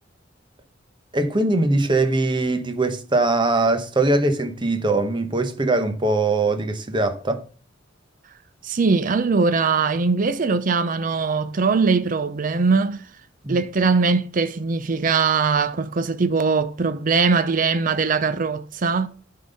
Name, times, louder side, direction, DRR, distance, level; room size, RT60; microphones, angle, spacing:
voice 1, 1.1-7.4 13.4-13.6, right 2 dB, 25° right, 0.9 m, -21 dB
voice 2, 8.6-13.0 13.5-19.1, right 4 dB, 45° right, 0.5 m, -21 dB
10.0 x 3.9 x 5.3 m
head